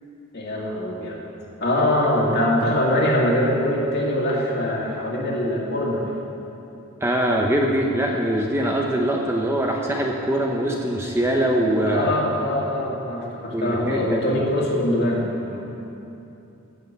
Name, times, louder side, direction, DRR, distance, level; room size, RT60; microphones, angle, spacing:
voice 1, 0.3-1.2 1.6-6.1 11.8-15.6, left 1 dB, 45° left, -3 dB, 2.3 m, -23 dB
voice 2, 7.0-12.1 13.5-14.3, right 1 dB, 10° right, 0 dB, 0.7 m, -22 dB
15.0 x 6.5 x 7.9 m, 2.8 s
head